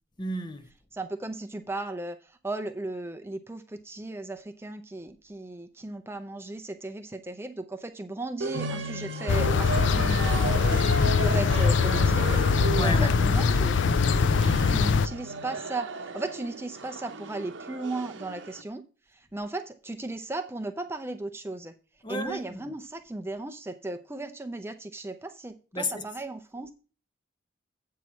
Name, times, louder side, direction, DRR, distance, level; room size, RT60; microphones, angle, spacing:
voice 1, 0.2-0.7 12.7-13.2 22.0-22.7 25.7-26.1, left 2 dB, 25° left, 0.7 m, -32 dB
voice 2, 0.9-10.8 11.2-18.8 19.1-21.7 22.1-26.7, right 2 dB, 15° right, 0.5 m, -36 dB
sound 1, 8.4-18.6, right 3 dB, 75° right, 0.8 m, -35 dB
sound 2, 9.3-15.1, left 5 dB, 75° left, 0.4 m, -22 dB
8.1 x 4.7 x 7.2 m
head